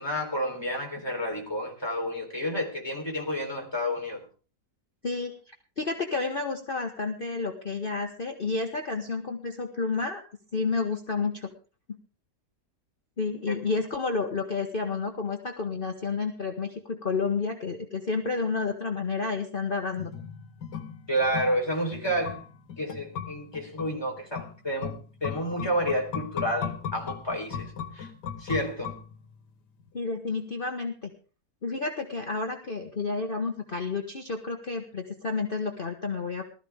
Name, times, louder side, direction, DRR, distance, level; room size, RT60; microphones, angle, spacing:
voice 1, 0.0-4.2 13.5-13.6 21.1-22.4 22.8-25.0 25.2-28.1 28.4-28.9, equal, 15° left, 0 dB, 3.8 m, -30 dB
voice 2, 5.0-5.3 5.8-10.2 10.5-11.5 13.2-20.1 29.9-31.1 31.6-36.5, left 4 dB, 35° left, 4 dB, 1.3 m, -30 dB
sound 1, 19.9-29.5 29.8-29.9, left 7 dB, 85° left, 1.9 m, -38 dB
19.5 x 13.5 x 3.6 m, 0.36 s
omnidirectional pair, 1.8 m